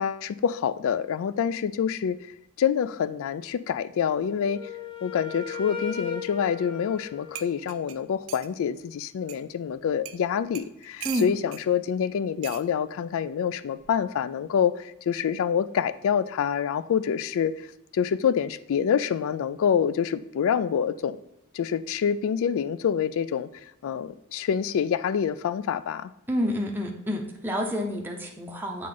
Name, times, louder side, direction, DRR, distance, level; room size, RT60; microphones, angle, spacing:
voice 1, 0.0-2.2 2.6-4.6 5.0-17.5 17.9-21.2 21.5-23.5 23.8-26.1, left 7 dB, 60° left, 15 dB, 0.3 m, -26 dB
Wind instrument woodwind instrument, 4.2-8.0, left 7 dB, 25° left, 0.8 m, -38 dB
sound 1, 7.0-7.1 7.3-8.5 9.3-9.4 10.0-10.2 10.5-11.6 12.4-12.7 13.8-14.0, right 11 dB, 60° right, 0.4 m, -40 dB
voice 2, 26.3-28.9, equal, 10° right, 0 dB, 0.6 m, -29 dB
7.6 x 3.7 x 3.8 m, 0.84 s
head